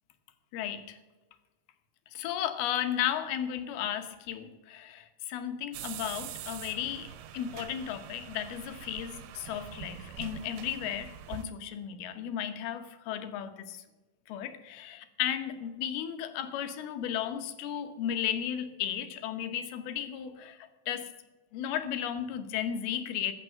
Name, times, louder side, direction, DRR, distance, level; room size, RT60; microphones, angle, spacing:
voice 1, 0.5-1.0 2.1-13.8 14.3-20.6 20.9-21.1 21.5-23.3, left 10 dB, 85° left, 9 dB, 2.9 m, -34 dB
sound 1, 5.7-11.4, right 10 dB, 85° right, 2.6 m, -44 dB
14.5 x 6.0 x 7.5 m, 1.2 s
omnidirectional pair, 4.3 m